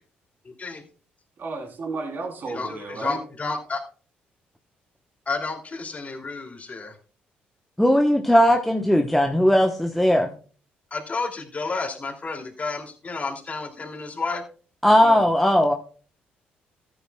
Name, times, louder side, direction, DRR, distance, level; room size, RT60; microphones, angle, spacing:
voice 1, 0.4-0.8 2.5-3.8 5.3-6.9 10.9-14.4, left 3 dB, 35° left, 3 dB, 2.7 m, -31 dB
voice 2, 1.4-3.2 15.0-15.2, right 3 dB, 55° right, 2 dB, 3.5 m, -33 dB
voice 3, 7.8-10.3 14.8-15.7, equal, 5° left, 3 dB, 1.1 m, -18 dB
14.5 x 9.4 x 2.3 m, 0.39 s
supercardioid pair, 65°, 4 cm